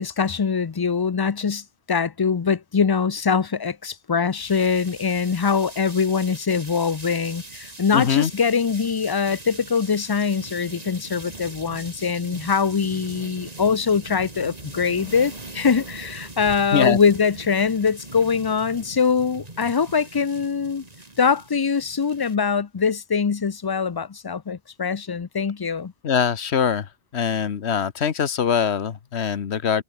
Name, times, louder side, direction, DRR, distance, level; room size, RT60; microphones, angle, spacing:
voice 1, 0.0-20.8 21.2-25.9, left 6 dB, 40° left, 0.3 m, -23 dB
sound 1, 4.4-22.4, right 2 dB, 35° right, 2.7 m, -41 dB
voice 2, 7.9-8.3 16.7-17.0 26.0-26.9 27.1-29.8, left 7 dB, 80° left, 1.3 m, -22 dB
omnidirectional pair, 1.1 m